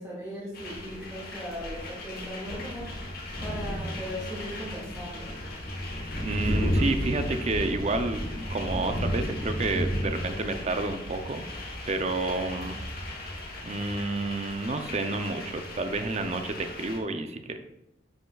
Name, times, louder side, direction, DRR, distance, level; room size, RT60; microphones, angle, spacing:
voice 1, 0.0-5.3, equal, 10° right, -10 dB, 2.2 m, -38 dB
sound 1, 0.5-17.0, equal, 55° left, 1.3 m, -34 dB
voice 2, 6.2-8.2 8.5-11.5 11.9-12.8 13.6-17.6, right 2 dB, 35° right, 7 dB, 0.6 m, -30 dB
10.0 x 5.5 x 2.4 m, 0.89 s
head